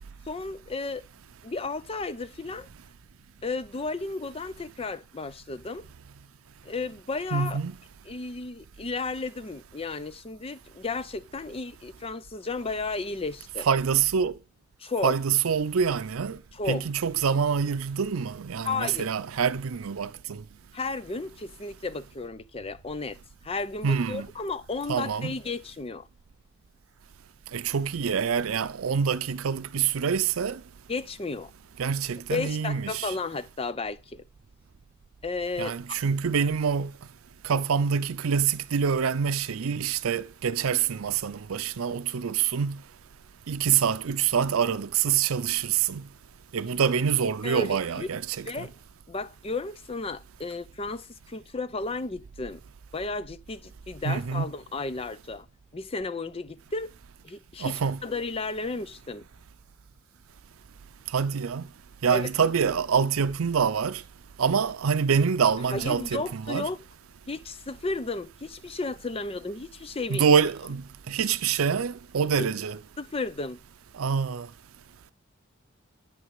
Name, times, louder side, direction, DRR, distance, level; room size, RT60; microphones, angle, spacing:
voice 1, 0.3-1.0 1.4-2.7 3.4-5.8 6.6-7.6 8.1-13.7 14.8-15.2 16.5-16.8 18.6-19.1 20.7-23.2 23.4-26.1 30.9-31.5 32.1-34.2 35.2-36.0 47.4-48.1 48.4-48.7 49.1-52.6 52.9-55.5 55.7-56.9 57.2-59.3 62.1-62.3 65.7-66.8 67.3-70.3 72.4-72.5 73.0-73.6, left 3 dB, 30° left, 0.6 m, -33 dB
voice 2, 7.3-7.7 13.6-14.4 15.0-16.4 16.7-20.4 23.8-24.3 24.9-25.3 27.5-30.6 31.8-33.2 35.6-36.9 37.4-42.8 43.5-46.0 46.5-48.7 54.0-54.5 57.6-58.0 61.1-61.6 62.0-64.0 64.4-66.7 70.1-72.8 73.9-74.5, right 6 dB, 90° right, 0.5 m, -26 dB
9.8 x 6.2 x 8.2 m
head